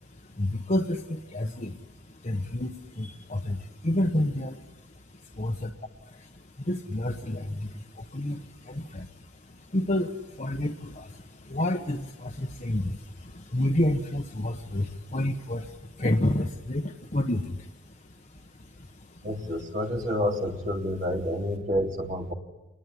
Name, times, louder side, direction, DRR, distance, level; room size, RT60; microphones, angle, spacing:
voice 1, 0.0-5.7 6.0-19.2, left 1 dB, 40° left, 3 dB, 1.2 m, -30 dB
voice 2, 19.2-22.3, left 1 dB, 40° right, 2 dB, 3.4 m, -29 dB
27.5 x 21.5 x 9.9 m, 1.1 s
head